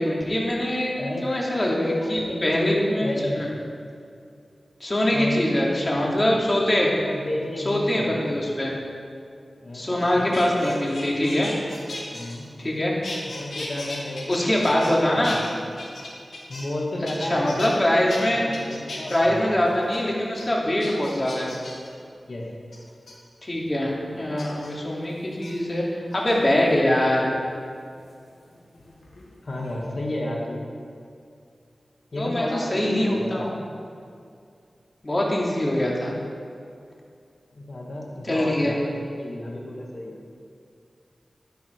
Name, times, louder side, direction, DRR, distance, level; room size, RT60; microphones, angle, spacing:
voice 1, 0.0-0.9 1.2-3.5 4.8-6.9 7.6-8.7 9.7-11.5 12.6-12.9 14.3-15.4 17.2-18.4 19.1-21.5 23.4-25.8 26.1-27.3 32.2-33.5 35.0-36.1 38.2-38.7, left 1 dB, 35° left, -3 dB, 2.7 m, -23 dB
voice 2, 1.0-1.4 2.0-3.6 5.1-6.4 7.1-8.3 9.6-10.8 12.1-12.5 13.3-15.4 16.5-17.9 18.3-19.5 22.3-22.7 29.4-30.6 32.1-33.5 37.5-40.1, left 1 dB, 60° left, -2 dB, 2.1 m, -32 dB
sound 1, 10.0-12.8 13.0-15.0 15.2-16.8 17.1-17.7 18.1-18.2 18.5-19.2 19.6-20.0 20.3-20.4 20.8-21.9 22.7-23.1 24.4-24.7 25.3-25.5 26.1-26.7 28.1-29.3 29.5-29.9, left 2 dB, 80° left, 2.4 m, -38 dB
11.5 x 11.0 x 4.7 m, 2.4 s
wide cardioid pair, 70°, 0 cm